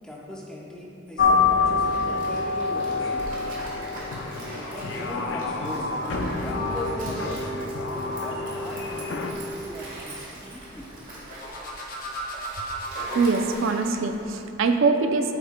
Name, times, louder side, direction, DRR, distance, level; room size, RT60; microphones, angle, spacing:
voice 1, 0.0-3.1 4.4-5.9 6.4-7.5 7.9-10.9, left 1 dB, 5° left, -4 dB, 0.7 m, -39 dB
sound 1, 1.2-9.3, left 4 dB, 65° left, 0.5 m, -27 dB
Stream, 1.3-14.4, right 1 dB, 40° right, 1.5 m, -42 dB
sound 2, 6.1-9.9 11.3-13.5, equal, 45° left, 0.9 m, -36 dB
voice 2, 13.1-15.3, right 4 dB, 75° right, 6 dB, 0.5 m, -23 dB
8.3 x 7.8 x 2.2 m, 2.7 s
head